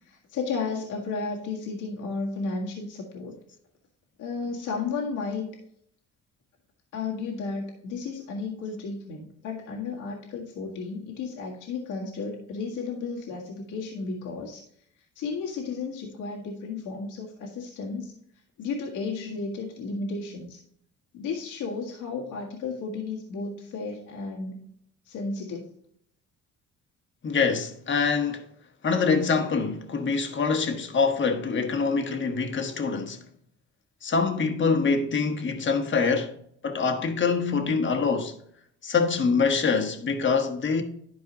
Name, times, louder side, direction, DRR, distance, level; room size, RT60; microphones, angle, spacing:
voice 1, 0.1-3.3 4.2-5.5 6.9-14.6 15.2-18.1 18.6-20.6 21.1-24.6 25.1-25.7, left 4 dB, 90° left, 1.7 m, -33 dB
voice 2, 27.2-28.4 28.8-33.2 34.0-36.3 36.6-38.3 38.8-40.8, left 5 dB, 40° left, 1.3 m, -25 dB
11.5 x 4.7 x 2.9 m
cardioid pair, 90°, 30 cm